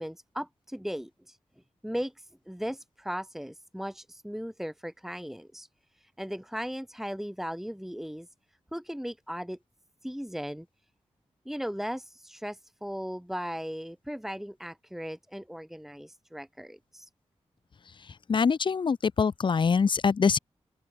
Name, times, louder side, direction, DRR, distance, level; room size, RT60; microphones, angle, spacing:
voice 1, 0.0-1.4 1.8-5.7 6.0-8.3 8.7-9.6 10.0-10.7 11.4-17.1, equal, 5° right, 3.3 m, -37 dB
voice 2, 18.3-20.4, left 5 dB, 40° left, 0.4 m, -24 dB
cardioid pair, 50°, 12 cm